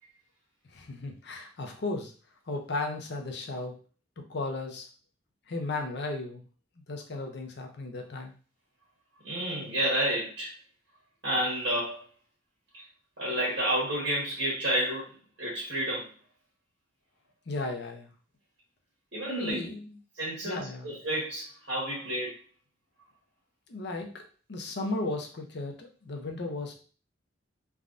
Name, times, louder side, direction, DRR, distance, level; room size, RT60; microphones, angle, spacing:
voice 1, 0.7-2.1 2.5-3.8 4.2-4.9 5.5-6.5 6.9-8.3 17.5-18.1 19.3-20.0 20.4-21.0 23.7-24.2 24.5-26.8, left 2 dB, 65° left, 3 dB, 0.6 m, -35 dB
voice 2, 9.2-10.5 11.2-12.0 12.7-12.8 13.2-15.1 15.4-16.1 19.1-19.7 20.2-22.3, right 1 dB, 85° right, -6 dB, 1.2 m, -30 dB
3.3 x 2.2 x 2.5 m, 0.38 s
head